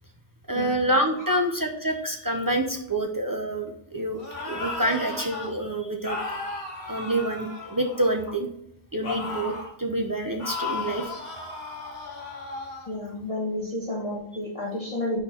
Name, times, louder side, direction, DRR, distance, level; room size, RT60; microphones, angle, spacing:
voice 1, 0.5-6.2 6.9-8.5 8.9-11.5, right 1 dB, 30° right, 2 dB, 0.4 m, -27 dB
sound 1, 4.1-5.5 6.0-8.3 9.0-9.7 10.4-12.9, left 3 dB, 55° left, 1.4 m, -35 dB
voice 2, 12.9-15.2, left 1 dB, 30° left, -5 dB, 1.2 m, -31 dB
4.4 x 4.3 x 5.4 m, 0.76 s
omnidirectional pair, 1.2 m